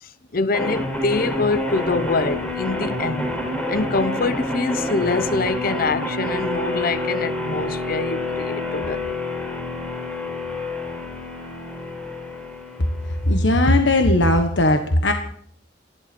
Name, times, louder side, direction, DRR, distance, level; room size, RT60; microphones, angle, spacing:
voice 1, 0.0-3.3 3.7-9.2, left 3 dB, 55° left, 0.8 m, -25 dB
sound 1, 0.5-13.5, left 1 dB, 5° left, 4.2 m, -28 dB
voice 2, 13.3-15.1, left 1 dB, 80° left, 1.4 m, -17 dB
28.0 x 11.5 x 4.5 m
head